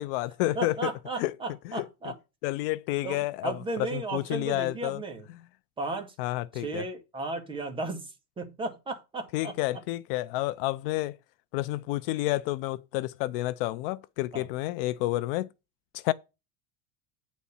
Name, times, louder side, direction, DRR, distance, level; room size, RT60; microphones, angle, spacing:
voice 1, 0.0-0.8 1.2-1.3 1.7-1.9 2.4-3.5 3.9-5.0 6.2-6.8 9.3-11.2 11.5-15.5 15.9-16.1, left 17 dB, 60° left, 0.5 m, -30 dB
voice 2, 0.5-2.1 3.0-5.3 5.8-6.1 6.5-9.8 14.3-14.5, right 2 dB, 15° right, 1.6 m, -35 dB
9.4 x 4.2 x 7.1 m
supercardioid pair, 160°, 33 cm